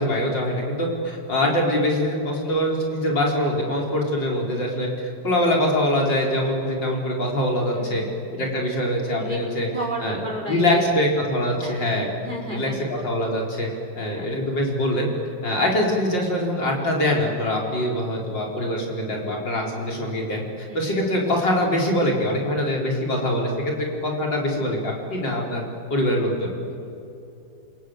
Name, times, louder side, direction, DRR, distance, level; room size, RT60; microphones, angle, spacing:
voice 1, 0.0-4.9 5.2-8.0 8.3-9.7 10.0-12.1 12.5-13.7 14.0-15.1 15.4-20.4 20.7-25.6 25.9-26.5, left 1 dB, 70° left, -1 dB, 5.3 m, -23 dB
voice 2, 7.7-8.2 9.2-9.4 9.7-10.9 11.6-11.8 12.2-12.8 14.1-14.3 20.7-20.8 26.7-26.9, right 1 dB, 25° right, 0 dB, 4.9 m, -32 dB
28.0 x 26.5 x 8.0 m, 2.8 s
omnidirectional pair, 2.1 m